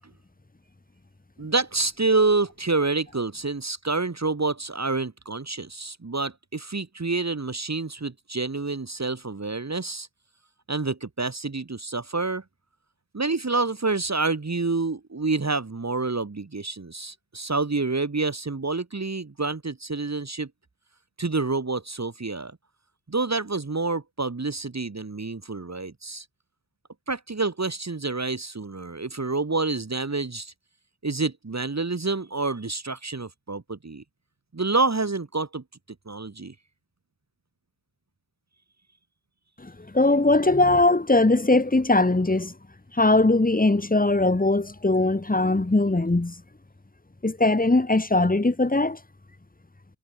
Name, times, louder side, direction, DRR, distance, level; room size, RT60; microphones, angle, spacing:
voice 1, 1.4-10.1 10.7-12.4 13.1-20.5 21.2-22.5 23.1-26.3 27.1-30.5 31.0-34.0 34.5-35.6 36.1-36.5, right 3 dB, 35° right, 2.2 m, -28 dB
voice 2, 39.6-42.5 43.0-46.3 47.2-49.0, left 2 dB, 20° left, 1.6 m, -20 dB
wide cardioid pair, 65°, 48 cm